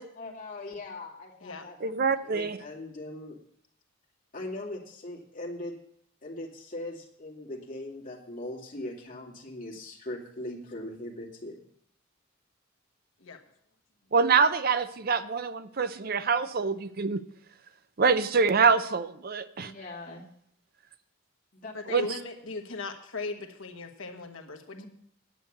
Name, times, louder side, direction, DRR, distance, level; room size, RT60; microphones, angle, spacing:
voice 1, 0.2-3.4 4.3-5.7 6.2-11.6 19.6-20.2 21.5-21.7 24.7-24.9, left 1 dB, 40° left, -2 dB, 2.4 m, -40 dB
voice 2, 1.8-2.6 14.1-17.2 18.0-19.7 21.9-22.1, right 5 dB, 45° right, 12 dB, 0.6 m, -25 dB
voice 3, 21.7-24.8, left 3 dB, 75° left, 4 dB, 1.3 m, -38 dB
10.0 x 8.2 x 6.6 m, 0.68 s
head